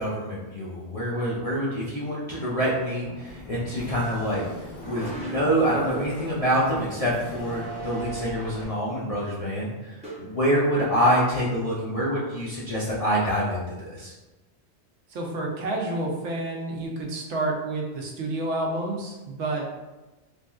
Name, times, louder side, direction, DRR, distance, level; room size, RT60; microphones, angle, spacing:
voice 1, 0.0-14.1, equal, 55° left, -8 dB, 0.4 m, -26 dB
sound 1, 3.0-8.6, right 1 dB, 90° left, 1.1 m, -39 dB
sound 2, 4.7-5.7 7.9-8.2 8.5-8.6 10.0-10.4, right 2 dB, 10° right, 0.4 m, -40 dB
voice 2, 15.1-19.7, right 2 dB, 75° right, -1 dB, 0.9 m, -29 dB
3.2 x 2.6 x 2.3 m, 1.1 s
omnidirectional pair, 1.2 m